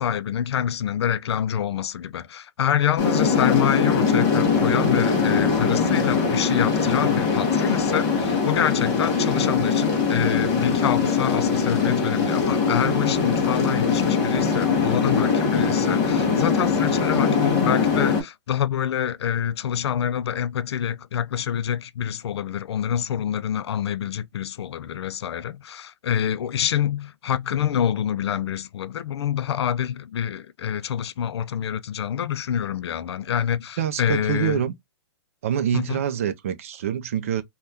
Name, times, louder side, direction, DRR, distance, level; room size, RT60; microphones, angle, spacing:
voice 1, 0.0-34.6 35.7-36.0, left 9 dB, 65° left, 0.4 m, -26 dB
sound 1, 3.0-18.2, left 5 dB, 20° left, 0.7 m, -22 dB
voice 2, 33.8-34.7 35.4-37.4, right 9 dB, 30° right, 0.4 m, -25 dB
3.4 x 2.2 x 2.6 m
hypercardioid pair, 175°, 15 cm